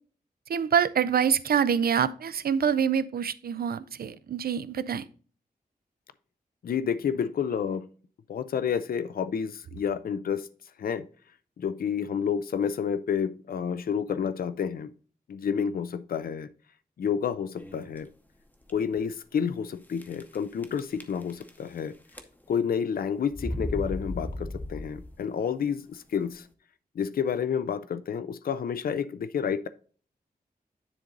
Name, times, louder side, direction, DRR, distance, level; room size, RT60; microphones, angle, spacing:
voice 1, 0.5-5.0, right 7 dB, 75° right, 15 dB, 0.5 m, -26 dB
voice 2, 6.6-7.9 8.3-10.5 10.8-11.1 11.6-14.9 15.3-16.5 17.0-18.1 18.7-21.9 22.5-26.4 27.0-29.7, left 7 dB, 70° left, 14 dB, 0.5 m, -29 dB
sound 1, 17.6-18.0 18.6-18.7 19.0-19.1 20.0-20.4 20.6-21.8 22.1-22.6 23.3-25.2, left 1 dB, 10° left, 0.8 m, -35 dB
9.9 x 3.9 x 3.8 m, 0.41 s
wide cardioid pair, 165°, 16 cm